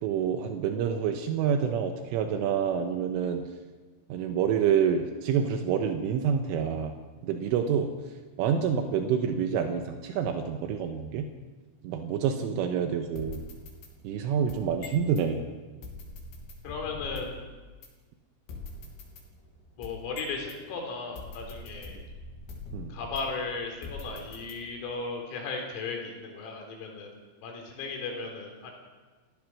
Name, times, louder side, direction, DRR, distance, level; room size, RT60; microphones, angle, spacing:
voice 1, 0.0-3.4 4.1-6.9 7.2-7.9 8.4-11.3 11.8-13.4 14.1-15.5 22.7-23.0, right 7 dB, 80° right, 5 dB, 3.6 m, -27 dB
sound 1, 13.2-15.3 15.8-17.4 17.8-17.9 18.5-20.6 21.2-23.4 23.8-24.9, left 3 dB, 65° left, 5.2 m, -43 dB
voice 2, 16.6-17.4 19.8-22.0 22.9-27.1 27.4-28.7, left 4 dB, 85° left, 2 dB, 6.4 m, -36 dB
29.5 x 16.0 x 6.2 m, 1.3 s
omnidirectional pair, 5.8 m